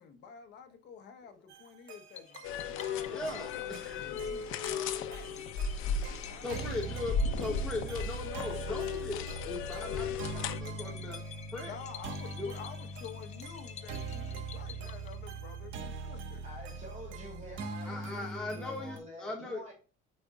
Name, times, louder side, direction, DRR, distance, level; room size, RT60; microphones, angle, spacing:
voice 1, 0.0-5.5 6.2-6.7 11.6-16.4, left 6 dB, 55° left, 1.2 m, -49 dB
sound 1, 1.5-19.0, right 3 dB, 65° right, 1.3 m, -42 dB
sound 2, 2.2-15.6, left 9 dB, 35° left, 0.6 m, -51 dB
sound 3, 2.4-10.6, left 5 dB, 85° left, 0.8 m, -36 dB
voice 2, 3.1-4.1 6.4-11.2 11.5-11.8 12.4-12.5 17.8-19.6, left 2 dB, 5° left, 1.0 m, -39 dB
voice 3, 16.4-19.7, equal, 35° right, 2.9 m, -47 dB
8.6 x 5.2 x 2.4 m
cardioid pair, 175°, 21 cm